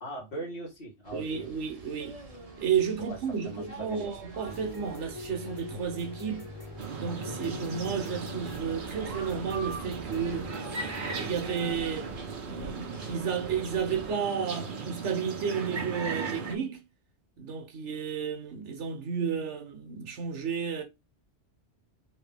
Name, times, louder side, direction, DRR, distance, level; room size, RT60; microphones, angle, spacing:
voice 1, 0.0-1.5 3.1-3.2 3.4-4.1, right 1 dB, 50° left, 1.7 m, -40 dB
sound 1, 1.0-14.1, right 3 dB, 35° right, 1.1 m, -47 dB
voice 2, 1.1-2.2 2.6-6.5 6.9-10.5 11.0-12.1 12.4-16.9 17.4-20.8, right 7 dB, 80° right, 1.2 m, -32 dB
sound 2, 4.4-11.7, left 2 dB, 25° left, 1.7 m, -43 dB
sound 3, 6.8-16.5, right 4 dB, 50° right, 0.8 m, -37 dB
3.3 x 2.8 x 3.3 m
omnidirectional pair, 1.2 m